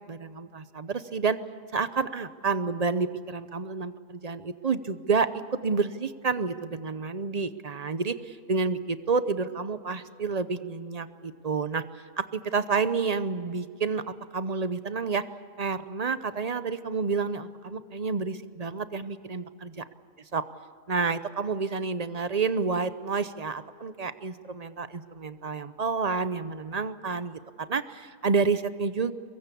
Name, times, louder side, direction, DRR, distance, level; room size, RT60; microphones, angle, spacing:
voice 1, 0.1-1.4 1.7-11.8 12.2-14.0 14.3-15.2 15.6-19.8 20.3-20.4 20.9-29.1, right 4 dB, 40° right, 12 dB, 0.5 m, -29 dB
23.5 x 22.0 x 8.4 m, 2.2 s
omnidirectional pair, 1.6 m